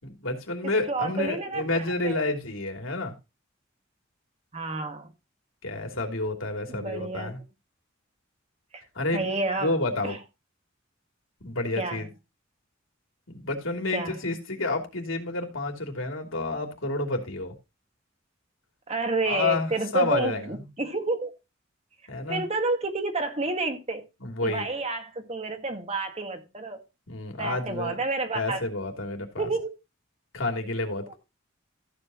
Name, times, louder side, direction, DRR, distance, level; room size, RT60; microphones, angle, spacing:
voice 1, 0.2-3.1 5.6-7.4 8.9-9.2 9.6-10.2 11.4-12.1 13.3-17.5 19.3-20.5 22.1-22.4 24.2-24.6 27.1-28.0 28.3-29.5 30.3-31.2, left 2 dB, 85° left, 3.0 m, -29 dB
voice 2, 0.9-2.2 4.5-5.1 6.7-7.3 8.7-8.8 9.1-9.8 10.0-10.2 11.8-12.1 13.9-14.2 18.9-21.3 22.3-24.0 24.4-26.8 27.4-28.6 29.4-29.7, right 3 dB, 35° right, 1.8 m, -30 dB
14.5 x 8.2 x 2.9 m
head